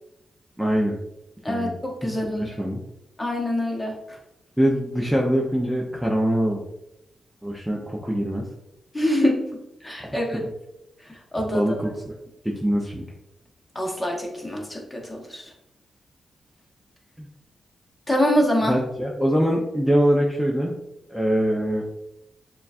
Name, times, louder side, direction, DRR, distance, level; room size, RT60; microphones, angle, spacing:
voice 1, 0.6-1.0 1.5-1.8 2.0-2.8 4.6-6.6 7.4-8.4 10.3-10.4 11.5-12.2 12.4-13.0 17.2-17.3 18.6-20.7 21.1-21.8, equal, 5° right, -2 dB, 0.6 m, -23 dB
voice 2, 1.4-2.4 3.2-3.9 8.9-9.4 9.8-10.4 11.3-11.6 13.7-15.4 18.1-18.8, left 1 dB, 15° left, 0 dB, 1.1 m, -24 dB
6.8 x 2.3 x 2.5 m, 0.85 s
cardioid pair, 85°, 0 cm